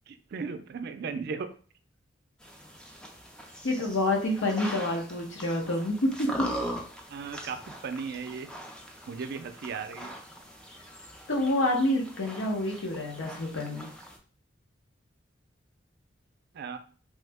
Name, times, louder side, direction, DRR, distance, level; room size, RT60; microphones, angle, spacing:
voice 1, 0.1-1.5 7.1-8.5 9.1-10.1 16.5-16.8, right 5 dB, 60° right, 9 dB, 0.4 m, -36 dB
sound 1, 2.4-14.2, equal, 5° left, 0.4 m, -41 dB
voice 2, 3.6-6.5 11.3-13.9, left 1 dB, 75° left, 1 dB, 0.8 m, -28 dB
3.1 x 2.1 x 3.4 m, 0.41 s
head